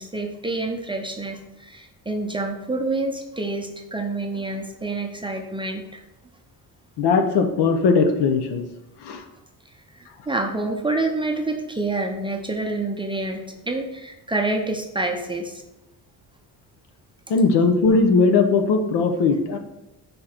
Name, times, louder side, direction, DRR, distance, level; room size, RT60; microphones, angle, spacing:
voice 1, 0.0-6.0 9.9-15.6, right 2 dB, 15° right, 3 dB, 0.5 m, -27 dB
voice 2, 7.0-8.6 9.0-9.2 17.3-19.6, left 4 dB, 80° left, 6 dB, 0.9 m, -19 dB
5.0 x 4.5 x 4.3 m, 0.95 s
cardioid pair, 135°, 40 cm